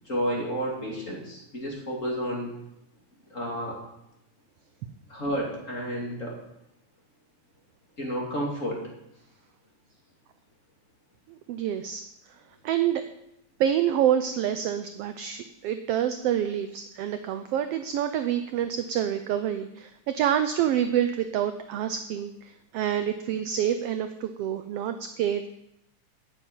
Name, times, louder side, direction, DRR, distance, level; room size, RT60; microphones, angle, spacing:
voice 1, 0.0-2.5 3.3-3.8 5.1-6.4 8.0-8.8, equal, 25° left, -2 dB, 2.7 m, -31 dB
voice 2, 11.3-12.0 12.6-13.0 13.6-25.5, right 10 dB, 80° right, 9 dB, 1.4 m, -27 dB
10.0 x 7.0 x 9.1 m, 0.84 s
omnidirectional pair, 3.4 m